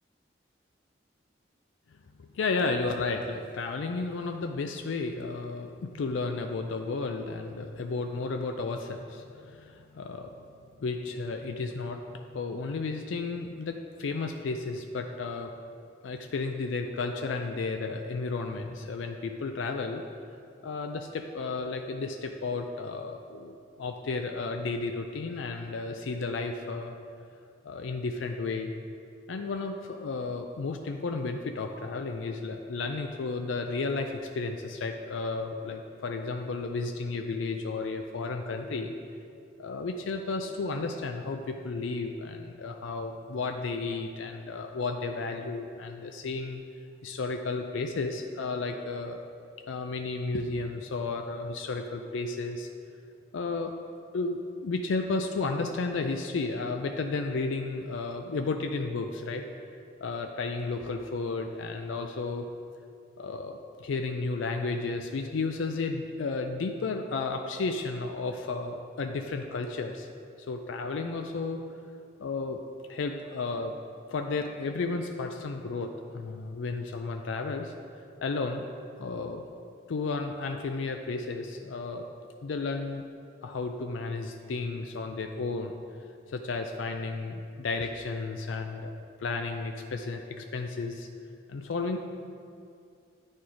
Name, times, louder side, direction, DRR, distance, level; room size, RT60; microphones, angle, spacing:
voice 1, 1.9-10.3 10.8-15.5 16.0-20.0 20.6-27.0 27.6-28.7 29.3-38.9 39.6-46.6 47.0-49.2 49.7-52.7 53.3-53.7 54.1-59.4 60.0-62.5 63.2-70.1 70.4-71.6 72.2-72.6 72.9-73.7 74.1-77.7 78.2-78.7 79.0-79.4 79.9-82.1 82.4-83.0 83.4-85.7 86.3-88.9 89.2-91.1 91.5-92.0, left 3 dB, 85° left, 5 dB, 0.4 m, -33 dB
9.3 x 4.3 x 4.9 m, 2.4 s
head